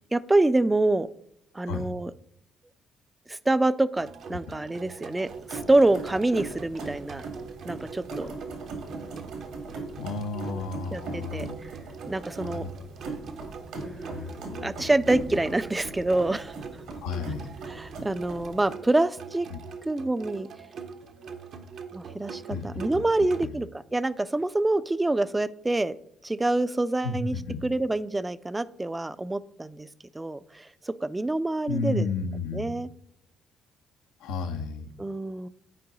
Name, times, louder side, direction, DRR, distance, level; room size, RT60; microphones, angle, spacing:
voice 1, 0.1-1.1 1.5-2.1 3.3-7.2 7.6-8.3 10.9-11.5 12.1-12.6 13.8-16.5 17.7-19.5 19.8-20.5 21.9-25.9 26.2-27.4 27.6-29.9 30.1-32.1 32.5-32.9 35.0-35.5, right 2 dB, 15° right, 15 dB, 0.4 m, -26 dB
sound 1, 4.0-23.5, right 6 dB, 65° right, 0.8 m, -43 dB
sound 2, 5.3-18.7, right 3 dB, 80° right, 1.7 m, -40 dB
voice 2, 10.0-11.6 12.4-12.7 13.9-15.5 17.0-17.5 19.5-19.6 22.5-23.1 23.4-23.6 27.0-27.6 31.7-32.8 34.2-34.9, left 4 dB, 80° left, 6 dB, 0.7 m, -33 dB
9.9 x 4.6 x 3.9 m, 0.77 s
hypercardioid pair, 55°, 0 cm